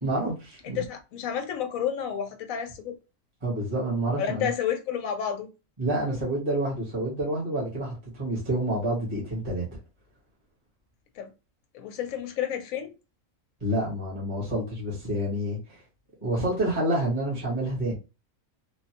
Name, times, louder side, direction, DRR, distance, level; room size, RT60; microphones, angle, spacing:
voice 1, 0.0-0.8 3.4-4.5 5.8-9.6 13.6-15.8 16.2-17.9, right 1 dB, 25° right, 1.2 m, -28 dB
voice 2, 0.6-3.0 4.2-5.5 11.2-11.3 11.7-12.9, left 9 dB, 90° left, 1.1 m, -30 dB
3.2 x 2.1 x 2.8 m
omnidirectional pair, 1.4 m